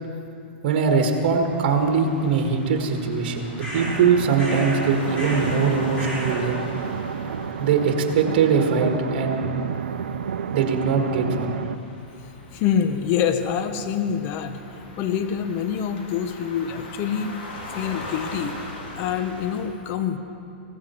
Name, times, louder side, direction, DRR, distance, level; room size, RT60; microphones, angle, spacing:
voice 1, 0.6-6.6 7.6-9.5 10.5-11.6, right 5 dB, 55° right, 3 dB, 1.7 m, -22 dB
sound 1, 1.4-19.7, left 2 dB, 70° left, 3.1 m, -40 dB
sound 2, 3.6-4.0 4.4-4.9 5.1-5.6 5.9-6.4, equal, 15° left, 4.3 m, -33 dB
sound 3, 3.7-11.7, right 7 dB, 85° right, 0.4 m, -30 dB
voice 2, 12.5-14.6 15.0-17.3 17.7-18.6 19.0-20.2, left 8 dB, 40° left, 9 dB, 0.9 m, -25 dB
16.0 x 14.5 x 4.4 m, 2.7 s
hypercardioid pair, 130°, 6 cm